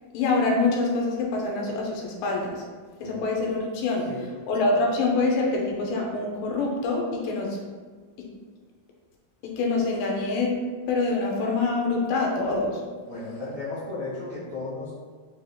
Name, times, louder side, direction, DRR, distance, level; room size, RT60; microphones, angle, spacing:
voice 1, 0.1-2.6 3.0-4.1 4.5-7.6 9.5-10.6 10.9-12.8, left 3 dB, 85° left, -1 dB, 2.5 m, -25 dB
voice 2, 13.0-14.9, left 2 dB, 70° right, -14 dB, 1.0 m, -34 dB
6.4 x 2.3 x 2.8 m, 1.5 s
omnidirectional pair, 4.1 m